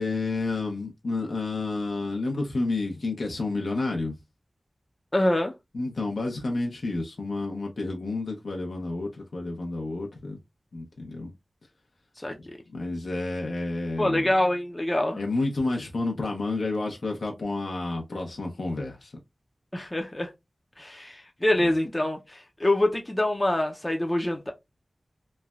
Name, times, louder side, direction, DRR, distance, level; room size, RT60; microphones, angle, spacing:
voice 1, 0.0-4.1 5.7-10.4 10.7-11.3 12.7-14.3 15.2-19.1, left 3 dB, 85° left, 0.7 m, -30 dB
voice 2, 5.1-5.5 12.2-12.6 14.0-15.2 19.7-20.3 20.8-24.5, left 1 dB, 20° left, 0.5 m, -25 dB
3.1 x 2.2 x 2.3 m
wide cardioid pair, 75°, 0 cm